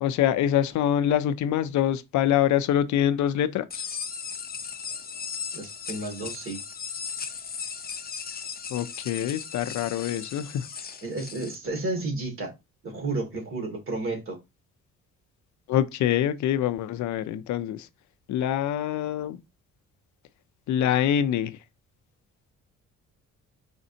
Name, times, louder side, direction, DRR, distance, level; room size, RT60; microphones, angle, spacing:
voice 1, 0.0-3.9 8.7-10.7 15.7-17.9 18.3-19.4 20.7-21.6, left 10 dB, 70° left, 0.6 m, -25 dB
sound 1, 3.7-11.6, left 6 dB, 30° left, 0.6 m, -37 dB
voice 2, 5.5-6.6 11.0-12.5 12.8-14.4, right 2 dB, 45° right, 2.3 m, -32 dB
5.0 x 3.6 x 2.8 m
cardioid pair, 90°, 30 cm